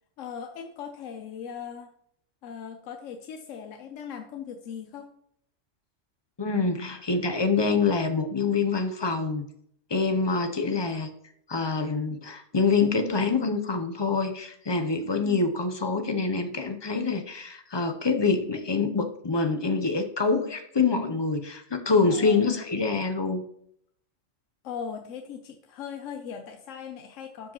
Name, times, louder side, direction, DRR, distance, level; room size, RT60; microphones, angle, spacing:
voice 1, 0.2-1.9 2.4-5.1 15.2-15.5 22.1-22.5 24.6-27.5, left 7 dB, 85° left, 5 dB, 1.0 m, -39 dB
voice 2, 6.4-9.5 9.9-11.1 11.5-23.4, left 4 dB, 35° left, 8 dB, 0.4 m, -26 dB
12.5 x 4.7 x 2.9 m, 0.69 s
omnidirectional pair, 1.3 m